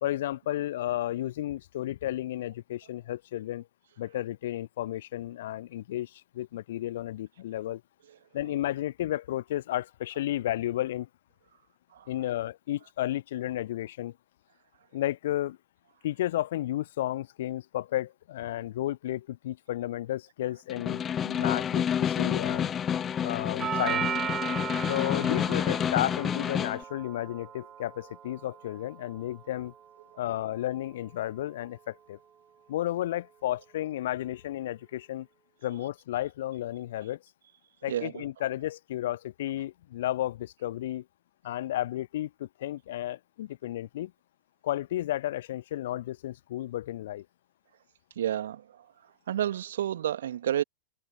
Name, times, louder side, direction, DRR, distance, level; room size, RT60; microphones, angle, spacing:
voice 1, 0.0-3.7 4.0-7.8 8.3-11.1 12.1-14.1 14.9-15.6 16.0-22.7 23.2-24.1 24.9-29.7 30.2-32.2 32.7-35.3 35.6-37.2 37.8-41.0 41.4-44.1 44.6-47.3, left 13 dB, 55° left, 0.5 m, -32 dB
Snare drum, 20.7-26.8, left 8 dB, 25° left, 1.2 m, -29 dB
Doorbell, 23.6-31.7, right 9 dB, 25° right, 1.3 m, -38 dB
voice 2, 37.9-38.2 48.2-48.6 49.3-50.6, right 11 dB, 60° right, 2.1 m, -30 dB
figure-of-eight pair, 90°, 0 cm